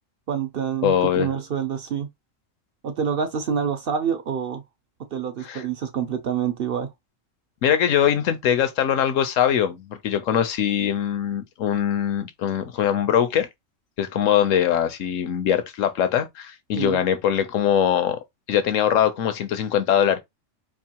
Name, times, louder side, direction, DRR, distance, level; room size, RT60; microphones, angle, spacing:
voice 1, 0.3-2.1 2.8-4.6 5.1-6.9 16.8-17.0, right 7 dB, 55° right, 0.7 m, -27 dB
voice 2, 0.8-1.3 5.4-5.6 7.6-13.5 14.0-18.2 18.5-20.2, left 9 dB, 75° left, 1.1 m, -22 dB
4.6 x 2.5 x 2.9 m
omnidirectional pair, 1.4 m